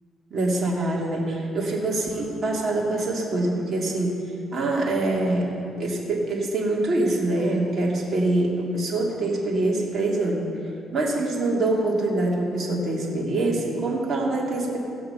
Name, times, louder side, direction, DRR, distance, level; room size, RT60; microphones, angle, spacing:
voice 1, 0.3-4.1 4.5-5.5 5.8-10.4 10.9-14.8, right 2 dB, 45° right, -3 dB, 2.8 m, -24 dB
17.5 x 6.5 x 5.8 m, 2.7 s
cardioid pair, 90°, 0 cm